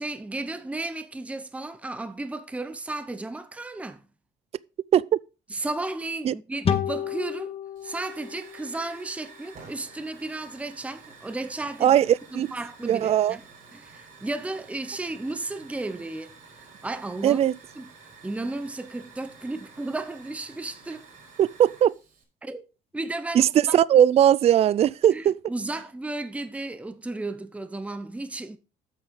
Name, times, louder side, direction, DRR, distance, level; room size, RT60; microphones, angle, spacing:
voice 1, 0.0-4.1 5.5-7.6 7.8-12.0 12.3-13.4 13.7-16.4 16.8-17.4 17.8-17.9 18.2-21.1 22.4-22.6 22.9-23.8 25.1-28.6, right 2 dB, 10° right, 0.8 m, -34 dB
sound 1, 6.6-10.0, left 8 dB, 35° left, 1.0 m, -32 dB
Hiss / Fire, 7.8-22.2, right 4 dB, 55° right, 4.5 m, -50 dB
voice 2, 11.8-12.5 12.8-13.4 17.2-17.5 21.4-21.9 23.3-25.3, right 10 dB, 35° right, 0.4 m, -19 dB
8.5 x 6.2 x 5.3 m
cardioid pair, 110°, 17 cm